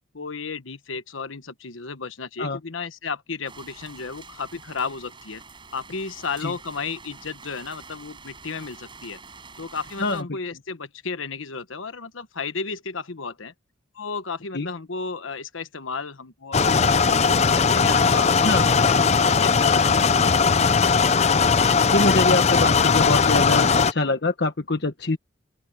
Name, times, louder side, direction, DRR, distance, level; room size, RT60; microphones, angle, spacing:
voice 1, 0.1-5.4 5.7-9.2 9.6-13.5 13.9-20.3, left 5 dB, 85° left, 1.2 m, -33 dB
sound 1, 3.4-10.2, right 4 dB, 25° right, 5.4 m, -46 dB
sound 2, 16.5-23.9, left 5 dB, 35° left, 0.6 m, -19 dB
voice 2, 21.9-25.2, left 2 dB, 55° left, 1.2 m, -24 dB
open air
head